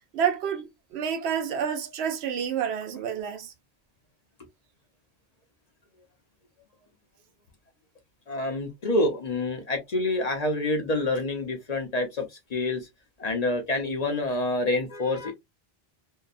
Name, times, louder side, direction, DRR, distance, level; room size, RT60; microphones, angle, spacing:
voice 1, 0.1-3.5, right 8 dB, 85° right, 0.9 m, -29 dB
voice 2, 8.3-12.3 12.5-12.8 13.2-15.3, left 2 dB, 50° left, 0.6 m, -27 dB
2.6 x 2.3 x 2.3 m
omnidirectional pair, 1.0 m